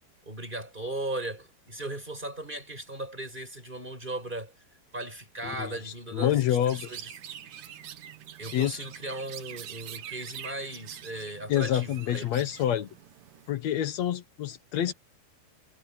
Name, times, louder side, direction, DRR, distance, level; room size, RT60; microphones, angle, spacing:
voice 1, 0.3-4.5 4.9-7.1 8.4-12.5, right 2 dB, 10° right, 7.1 m, -37 dB
voice 2, 5.4-6.9 8.5-8.8 11.5-12.9 13.5-14.9, left 11 dB, 70° left, 1.7 m, -27 dB
Chirp tweet, 6.7-13.5, right 10 dB, 60° right, 2.7 m, -45 dB
omnidirectional pair, 4.8 m